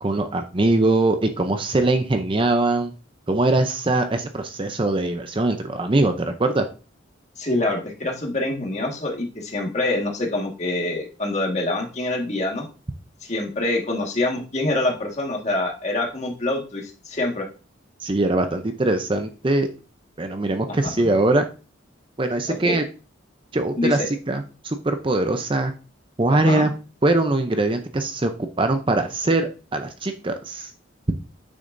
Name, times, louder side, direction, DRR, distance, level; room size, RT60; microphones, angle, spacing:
voice 1, 0.0-2.9 3.3-6.7 18.0-19.7 20.2-21.5 22.2-22.8 23.5-25.7 26.2-26.7 27.0-30.7, right 2 dB, 25° right, 7 dB, 0.6 m, -22 dB
voice 2, 7.4-12.7 13.2-17.4 20.7-21.1 22.5-22.8 23.8-23.9 26.3-26.7, left 2 dB, 35° left, 1 dB, 1.7 m, -25 dB
8.7 x 6.7 x 2.6 m, 0.34 s
head